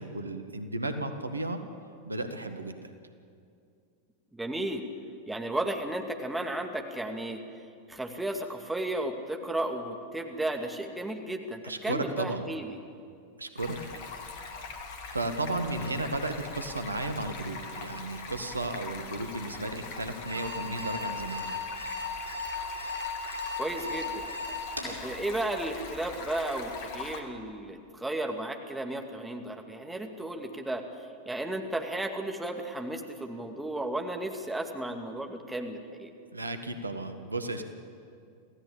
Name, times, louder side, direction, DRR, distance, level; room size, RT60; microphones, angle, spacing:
voice 1, 0.0-1.6 2.1-2.8 11.6-12.5 13.4-13.8 15.1-21.5 36.3-37.6, right 2 dB, 80° right, 8 dB, 1.7 m, -34 dB
voice 2, 4.3-4.9 5.3-7.4 7.9-12.8 23.6-24.3 24.8-30.8 31.3-36.1, right 1 dB, 5° right, 3 dB, 2.3 m, -34 dB
Stream, 13.6-27.2, left 4 dB, 50° left, 2.7 m, -42 dB
Alarm, 20.3-25.0, left 3 dB, 80° left, 7.7 m, -36 dB
27.0 x 16.0 x 8.6 m, 2.4 s
figure-of-eight pair, 90°, 0 cm